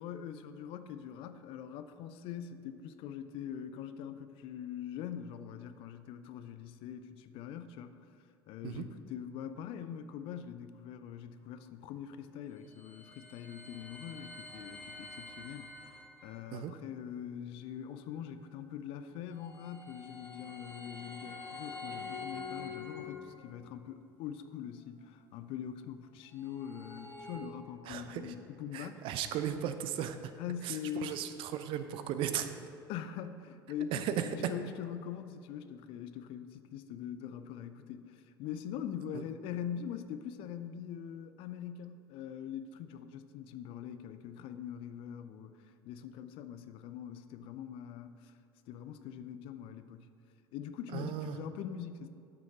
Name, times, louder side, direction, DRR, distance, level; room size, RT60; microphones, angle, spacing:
voice 1, 0.0-8.0 8.5-29.0 30.4-31.2 32.9-48.3 48.7-50.1 50.5-52.1, left 9 dB, 45° left, 10 dB, 0.5 m, -43 dB
sound 1, 12.4-16.4 19.2-23.6 26.2-27.4, left 4 dB, 15° left, 1.5 m, -46 dB
voice 2, 27.9-28.3 28.7-30.3 30.6-30.8 31.0-32.5 33.9-34.1 50.9-51.4, right 10 dB, 45° right, 10 dB, 0.6 m, -36 dB
13.0 x 6.0 x 3.7 m, 2.5 s
figure-of-eight pair, 65°, 12 cm